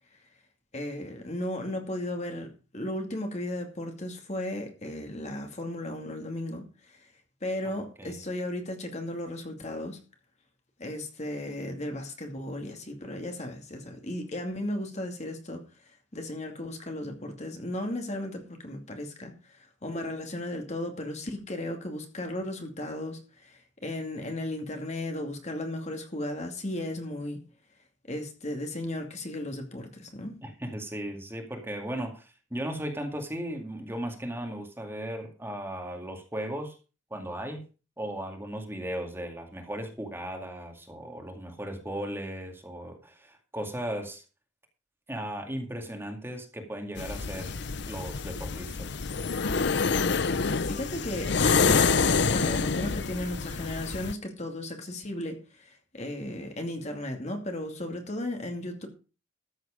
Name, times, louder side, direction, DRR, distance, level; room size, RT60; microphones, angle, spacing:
voice 1, 0.7-2.5 2.7-7.1 7.4-10.0 10.8-15.6 16.1-27.4 28.1-30.4 50.7-58.9, left 1 dB, 40° left, 2.4 m, -35 dB
voice 2, 7.7-8.2 30.4-36.8 37.1-37.6 38.0-44.2 45.1-47.6 47.9-49.0, right 1 dB, 15° right, 2.2 m, -36 dB
sound 1, 47.0-54.1, left 5 dB, 65° left, 0.7 m, -27 dB
13.5 x 7.8 x 5.1 m
head